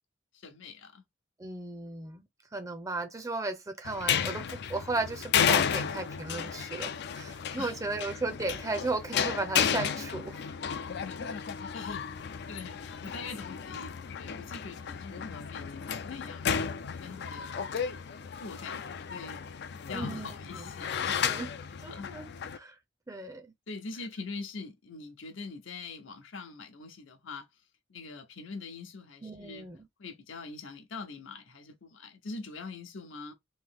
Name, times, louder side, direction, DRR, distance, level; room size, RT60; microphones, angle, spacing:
voice 1, 0.4-1.0 7.6-7.8 11.1-11.2 11.7-12.0 12.3-17.6 18.1-19.4 19.7-21.4 21.9-22.1 23.7-27.5 27.9-29.7 30.0-33.3, left 4 dB, 80° left, 0.8 m, -44 dB
voice 2, 1.4-2.2 2.5-10.4 19.9-20.7 21.0-21.5 21.8-22.7 23.1-23.5 29.2-29.9, right 3 dB, 15° right, 0.6 m, -35 dB
sound 1, 3.8-22.6, left 7 dB, 60° left, 0.4 m, -33 dB
3.2 x 2.7 x 3.5 m
head